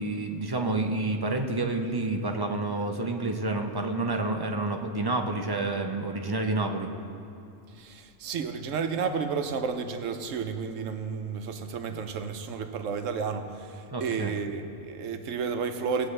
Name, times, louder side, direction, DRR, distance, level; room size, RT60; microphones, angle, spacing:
voice 1, 0.0-6.9 13.9-14.3, right 2 dB, 30° right, 3 dB, 0.4 m, -29 dB
voice 2, 7.7-16.1, right 5 dB, 80° right, 7 dB, 1.1 m, -32 dB
17.5 x 8.4 x 3.2 m, 2.6 s
omnidirectional pair, 1.3 m